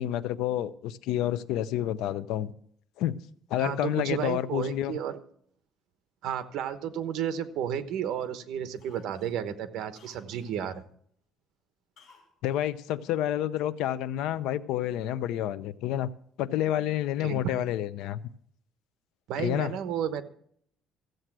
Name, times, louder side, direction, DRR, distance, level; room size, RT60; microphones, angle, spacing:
voice 1, 0.0-2.5 3.0-3.1 3.5-5.0 12.4-16.1 16.4-18.2 19.4-19.7, left 12 dB, 85° left, 15 dB, 0.6 m, -29 dB
voice 2, 3.6-5.2 6.2-10.9 17.2-17.6 19.3-20.2, right 9 dB, 65° right, 11 dB, 1.0 m, -32 dB
Cough, 6.6-7.8 8.2-8.4 8.8-10.6 12.0-12.3 12.6-12.7, left 5 dB, 55° left, 5.6 m, -60 dB
14.5 x 7.9 x 6.1 m, 0.64 s
cardioid pair, 165°, 0 cm